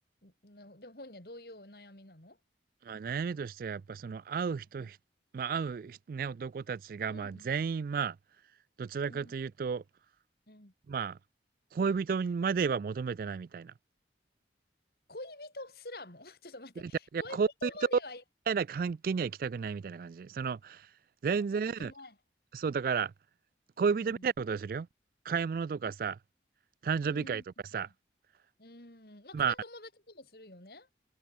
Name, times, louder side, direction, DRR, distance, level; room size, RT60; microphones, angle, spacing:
voice 1, 0.0-2.4 4.8-4.9 7.1-7.5 9.0-9.3 10.5-10.7 15.1-18.2 21.3-22.2 23.9-24.3 27.0-27.4 27.8-27.9 28.6-30.9, left 2 dB, 55° left, 4.5 m, -48 dB
voice 2, 2.8-5.0 5.3-8.2 8.8-9.8 10.9-11.2 11.7-13.7 16.8-17.7 18.5-20.9 21.2-21.9 22.5-23.1 23.8-24.9 25.3-26.2 26.8-27.4 27.7-27.9 29.3-29.5, right 6 dB, 50° right, 0.3 m, -32 dB
head